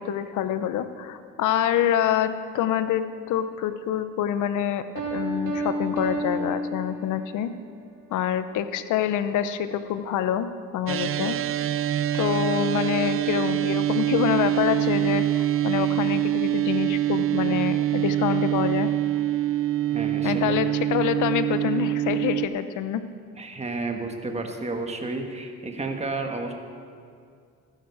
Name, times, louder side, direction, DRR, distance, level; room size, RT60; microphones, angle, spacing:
voice 1, 0.0-4.8 5.1-7.5 8.1-10.5 10.7-11.4 12.1-18.9 20.2-23.0, left 10 dB, 80° left, 11 dB, 0.8 m, -26 dB
Piano, 5.0-7.4, right 1 dB, 75° right, 2.7 m, -30 dB
sound 1, 10.9-22.5, right 13 dB, 45° right, 0.5 m, -25 dB
voice 2, 19.9-20.4 20.9-21.1 23.4-26.5, right 3 dB, 20° right, 4 dB, 1.5 m, -31 dB
14.0 x 12.5 x 4.8 m, 2.2 s
cardioid pair, 90°, 30 cm